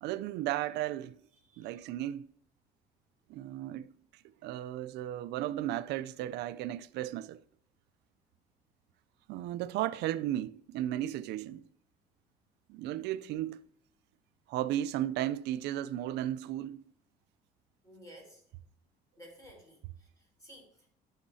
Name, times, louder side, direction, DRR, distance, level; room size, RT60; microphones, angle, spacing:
voice 1, 0.0-1.2 1.6-2.3 3.3-7.4 9.3-11.7 12.7-13.7 14.5-16.8, right 13 dB, 80° right, 0.4 m, -35 dB
voice 2, 1.4-1.8 17.8-18.4 19.2-20.9, equal, 20° left, 3.9 m, -55 dB
13.0 x 6.5 x 2.7 m
cardioid pair, 110°, 17 cm